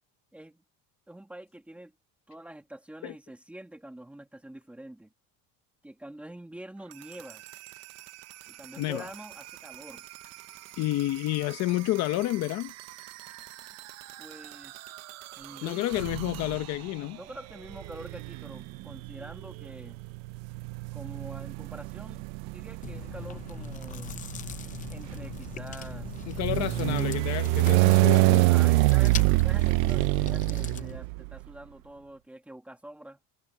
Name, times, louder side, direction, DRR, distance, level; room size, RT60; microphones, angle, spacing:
voice 1, 0.3-0.6 1.1-1.9 2.3-5.1 5.8-7.4 8.5-10.0 14.2-14.9 15.4-16.1 17.2-20.0 20.9-24.2 24.9-26.3 28.4-33.2, right 1 dB, 5° right, 2.0 m, -46 dB
sound 1, 6.8-20.6, right 15 dB, 45° right, 1.0 m, -47 dB
voice 2, 10.8-12.7 15.6-17.2 26.3-28.5, left 16 dB, 50° left, 0.9 m, -30 dB
sound 2, 15.9-16.6 17.7-31.4, right 23 dB, 85° right, 0.7 m, -26 dB
Chewing mastication, 22.8-31.0, left 11 dB, 20° left, 0.6 m, -41 dB
cardioid pair, 180°, 36 cm